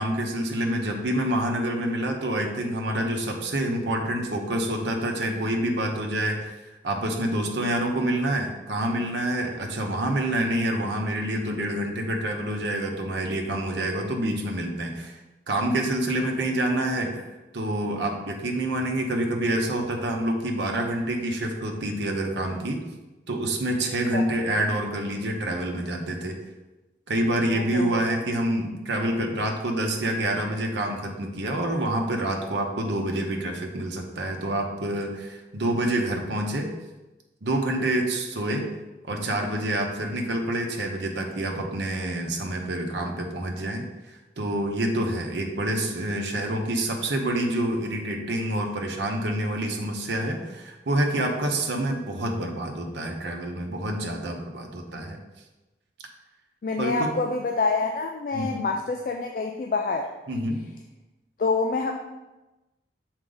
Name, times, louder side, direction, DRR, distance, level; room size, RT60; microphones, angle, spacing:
voice 1, 0.0-6.5 6.8-15.1 15.5-17.3 17.5-22.8 23.3-26.4 27.1-36.7 37.4-38.7 39.1-55.2 56.8-57.1 58.3-58.7 60.3-60.7, right 1 dB, 85° right, 2 dB, 0.9 m, -27 dB
voice 2, 27.5-28.0 56.6-60.1 61.4-61.9, left 3 dB, 50° left, 3 dB, 0.3 m, -27 dB
6.3 x 4.4 x 3.9 m, 1.1 s
head